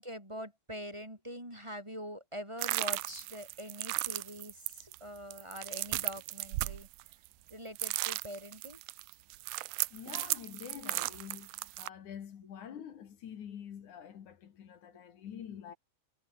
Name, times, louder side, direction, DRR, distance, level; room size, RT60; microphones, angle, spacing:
voice 1, 0.0-6.9 7.5-8.8, equal, 10° right, 6.8 m, -44 dB
sound 1, 2.6-7.5 7.8-11.9, right 20 dB, 85° right, 2.0 m, -36 dB
voice 2, 9.9-15.8, left 9 dB, 75° left, 3.5 m, -46 dB
omnidirectional pair, 3.5 m